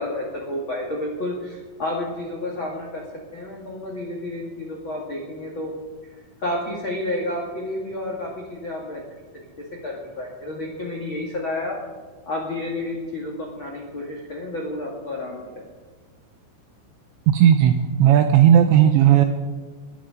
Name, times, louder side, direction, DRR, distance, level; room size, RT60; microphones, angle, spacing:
voice 1, 0.0-3.0 3.3-5.7 6.4-9.0 9.6-11.8 12.2-15.6, left 1 dB, 85° left, -1 dB, 1.1 m, -30 dB
voice 2, 17.3-17.7 18.0-19.3, right 10 dB, 90° right, 7 dB, 2.5 m, -14 dB
22.0 x 9.7 x 5.0 m, 1.4 s
omnidirectional pair, 6.0 m